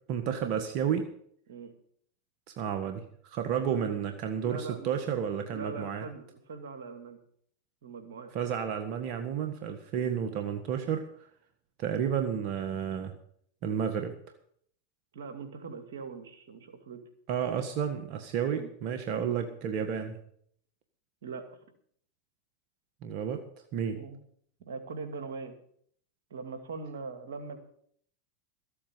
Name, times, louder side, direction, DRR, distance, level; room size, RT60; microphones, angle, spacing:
voice 1, 0.1-1.1 2.6-3.0 3.3-6.0 8.3-11.1 11.8-13.1 13.6-14.1 17.3-20.2 23.0-23.5 23.7-24.0, right 8 dB, 55° right, 7 dB, 1.6 m, -31 dB
voice 2, 4.4-5.2 5.5-7.2 7.8-8.3 10.0-10.2 15.1-17.0 18.5-18.7 19.2-19.3 21.2-21.6 23.9-24.2 24.7-25.5 26.3-27.6, right 4 dB, 80° right, 7 dB, 2.3 m, -41 dB
14.0 x 8.6 x 7.6 m, 0.64 s
hypercardioid pair, 100°, 0 cm